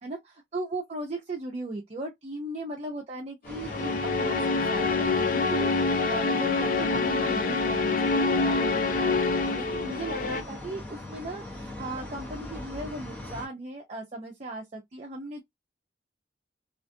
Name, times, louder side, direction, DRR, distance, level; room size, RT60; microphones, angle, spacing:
voice 1, 0.0-15.4, right 2 dB, 35° right, 0.5 m, -37 dB
sound 1, 3.4-13.5, left 1 dB, 10° left, 0.7 m, -40 dB
sound 2, 3.5-10.4, left 3 dB, 50° left, 0.4 m, -26 dB
2.5 x 2.3 x 2.5 m
head